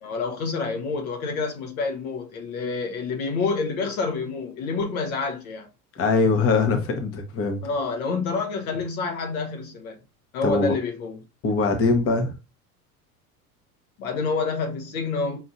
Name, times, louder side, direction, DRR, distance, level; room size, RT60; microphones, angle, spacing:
voice 1, 0.0-5.7 7.6-10.0 10.3-11.2 14.0-15.4, left 4 dB, 65° left, 1.1 m, -28 dB
voice 2, 6.0-7.6 10.4-10.7 11.4-12.3, left 4 dB, 30° left, 0.9 m, -22 dB
5.6 x 2.6 x 2.6 m
figure-of-eight pair, 75°, 45 cm